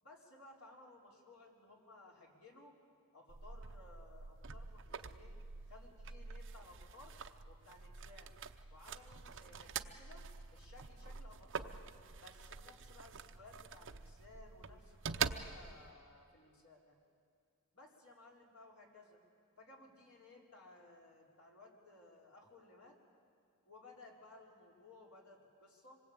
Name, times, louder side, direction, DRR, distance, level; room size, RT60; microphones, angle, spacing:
voice 1, 0.0-2.8 3.1-5.4 5.7-7.2 7.5-8.3 8.7-11.8 12.2-17.0 17.7-19.2 19.6-23.0 23.7-26.0, left 2 dB, 80° left, -2 dB, 4.4 m, -59 dB
sound 1, 3.3-15.9, right 6 dB, 60° right, 0.8 m, -46 dB
26.0 x 21.5 x 8.8 m, 2.3 s
head